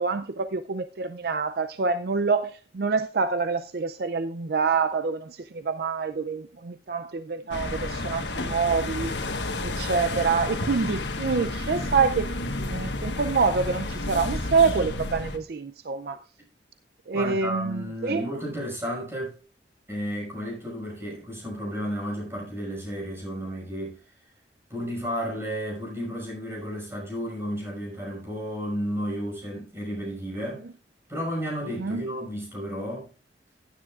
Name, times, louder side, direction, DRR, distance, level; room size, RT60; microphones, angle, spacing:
voice 1, 0.0-9.3 9.6-12.3 12.6-16.2 17.1-18.3 31.8-32.1, right 5 dB, 55° right, 0.5 m, -26 dB
sound 1, 7.5-15.4, left 2 dB, 70° left, 1.4 m, -31 dB
voice 2, 17.1-19.4 19.9-24.0 24.7-30.7 31.1-33.1, equal, 15° right, 5.8 m, -32 dB
16.0 x 9.9 x 2.5 m
head